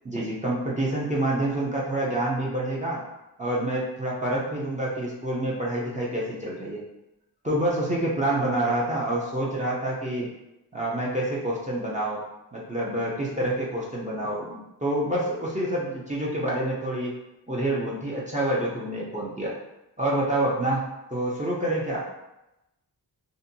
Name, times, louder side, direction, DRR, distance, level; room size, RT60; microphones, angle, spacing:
voice 1, 0.0-3.0 3.4-6.8 7.4-10.3 10.7-12.2 12.5-17.1 17.5-19.5 20.0-20.8 21.1-22.1, right 1 dB, 20° right, -6 dB, 0.6 m, -27 dB
2.6 x 2.6 x 2.6 m, 0.93 s
wide cardioid pair, 105°, 41 cm